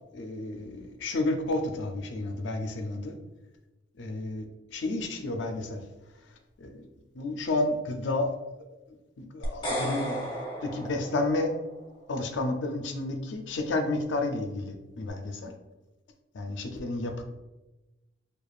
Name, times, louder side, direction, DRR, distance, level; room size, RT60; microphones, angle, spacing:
voice 1, 0.1-3.2 4.0-4.5 4.7-5.8 6.6-6.9 7.1-8.3 8.9-10.3 10.6-11.5 12.1-15.5 16.3-17.2, left 2 dB, 70° left, 5 dB, 0.5 m, -31 dB
sound 1, 9.4-11.7, equal, 25° left, 0.9 m, -34 dB
4.8 x 2.3 x 2.3 m, 1.1 s
head